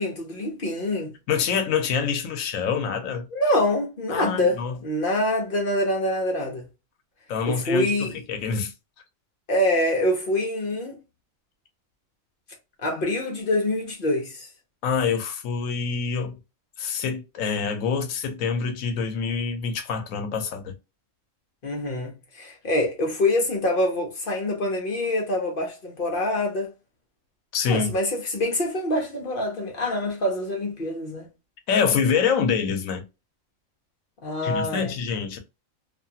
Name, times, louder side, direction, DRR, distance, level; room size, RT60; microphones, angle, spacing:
voice 1, 0.0-1.1 3.3-6.7 7.5-8.1 9.5-10.9 12.8-14.5 21.6-26.7 27.7-31.3 34.2-34.9, left 1 dB, 50° left, 0.8 m, -25 dB
voice 2, 1.3-3.3 4.1-4.8 7.3-8.7 14.8-16.4 16.8-20.7 27.5-28.0 31.7-33.0 34.4-35.4, left 6 dB, 90° left, 1.0 m, -26 dB
2.6 x 2.3 x 2.7 m
omnidirectional pair, 1.4 m